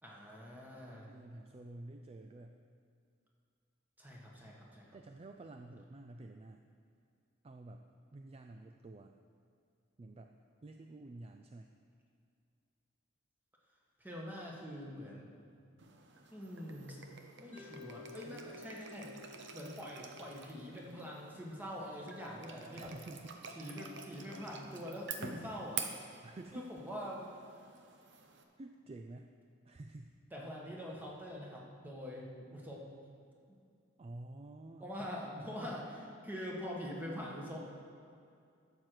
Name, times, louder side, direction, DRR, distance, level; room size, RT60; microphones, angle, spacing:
voice 1, 0.0-1.1 4.0-5.0 14.0-15.3 16.3-17.0 17.4-19.1 19.5-22.9 23.5-25.8 26.5-27.3 30.3-32.8 33.5-33.6 34.8-37.6, equal, 10° right, -3 dB, 1.7 m, -44 dB
voice 2, 1.1-2.6 4.9-6.7 7.4-9.1 10.0-10.3 10.6-11.7 18.2-18.6 22.8-23.4 25.3-25.5 26.1-26.7 28.6-29.3 29.6-30.1 34.0-35.1, right 2 dB, 30° right, 4 dB, 0.4 m, -50 dB
sound 1, 15.8-28.4, right 5 dB, 65° right, 0.9 m, -48 dB
Mallet percussion, 17.5-21.6, left 3 dB, 10° left, 1.5 m, -55 dB
12.0 x 7.6 x 4.8 m, 2.4 s
head